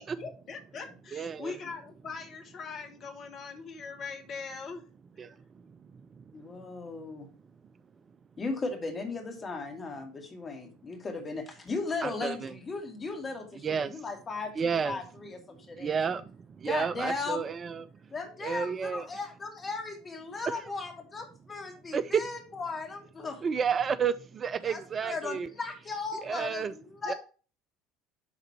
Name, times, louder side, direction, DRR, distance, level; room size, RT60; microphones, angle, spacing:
voice 1, 0.0-4.8 27.0-27.1, left 4 dB, 45° left, 1.7 m, -41 dB
voice 2, 1.1-1.5 5.2-5.3 6.2-6.3 12.0-12.5 13.6-14.0 14.6-15.0 15.8-17.9 18.4-19.1 20.5-20.6 21.9-22.2 23.4-25.5 26.2-26.7 27.1-27.2, right 6 dB, 30° right, 0.4 m, -31 dB
voice 3, 6.3-7.3 8.4-16.0 16.7-17.4 18.1-23.5 24.6-27.1, left 3 dB, 25° left, 2.3 m, -37 dB
11.5 x 3.8 x 4.5 m
figure-of-eight pair, 65°, 0 cm